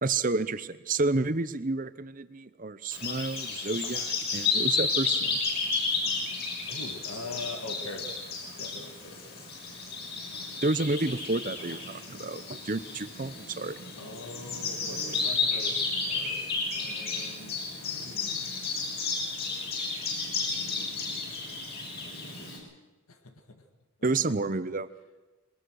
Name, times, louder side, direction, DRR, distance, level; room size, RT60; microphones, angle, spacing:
voice 1, 0.0-5.4 10.6-13.8 24.0-24.9, right 3 dB, 35° right, 14 dB, 0.7 m, -30 dB
Bird vocalization bird call bird song, 2.9-22.6, left 4 dB, 45° left, 6.7 m, -32 dB
voice 2, 6.7-8.2 8.6-9.4 14.0-16.4 16.7-17.7 17.9-18.5 22.0-22.5 23.1-23.6 24.1-24.4, left 2 dB, 75° left, 6 dB, 2.0 m, -43 dB
22.0 x 19.5 x 6.4 m, 1.2 s
head